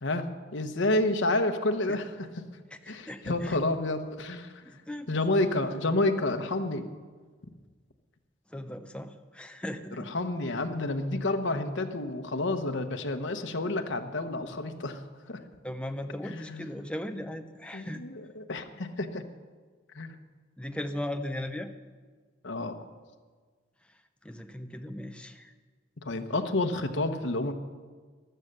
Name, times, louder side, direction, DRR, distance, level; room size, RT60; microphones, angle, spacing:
voice 1, 0.0-2.4 2.9-4.5 5.1-6.9 10.0-15.0 15.3-15.4 16.2-16.8 17.7-19.2 19.9-20.2 22.4-22.7 26.0-27.5, left 2 dB, 75° left, 7 dB, 1.1 m, -29 dB
voice 2, 2.7-3.6 4.6-5.2 8.5-10.1 15.6-18.0 20.6-21.7 23.9-25.5, left 1 dB, 5° left, 7 dB, 0.8 m, -38 dB
14.5 x 12.0 x 6.7 m, 1.5 s
head